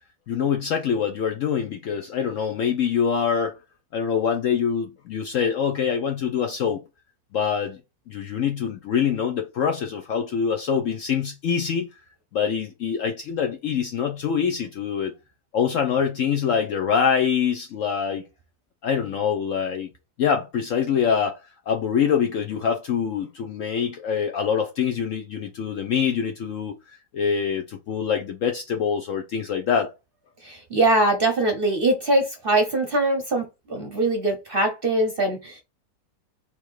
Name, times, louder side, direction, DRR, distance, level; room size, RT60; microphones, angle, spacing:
voice 1, 0.3-3.6 3.9-6.8 7.3-7.8 8.1-11.9 12.3-15.1 15.5-18.2 18.8-19.9 20.2-21.4 21.7-29.9, left 7 dB, 65° left, 0.8 m, -24 dB
voice 2, 30.4-35.6, right 2 dB, 45° right, 0.8 m, -22 dB
3.5 x 3.0 x 4.6 m
omnidirectional pair, 1.8 m